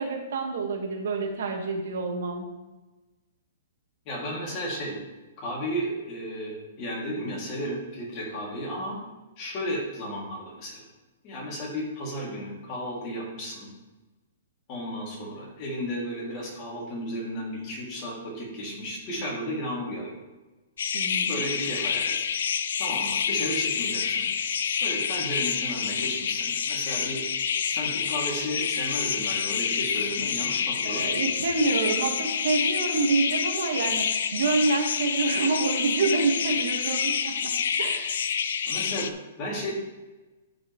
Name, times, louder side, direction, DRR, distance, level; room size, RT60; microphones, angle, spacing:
voice 1, 0.0-2.4 20.9-21.3 30.8-37.5 37.8-38.1, right 3 dB, 70° right, 2 dB, 1.8 m, -27 dB
voice 2, 4.0-5.0 5.4-9.0 9.4-10.8 11.2-13.7 14.7-20.2 21.3-22.1 22.8-24.3 24.8-27.2 27.6-31.1 38.6-39.7, equal, 30° left, -4 dB, 2.8 m, -33 dB
sound 1, 20.8-39.1, left 7 dB, 70° left, 0.6 m, -28 dB
12.0 x 5.3 x 3.3 m, 1.1 s
hypercardioid pair, 165°, 0 cm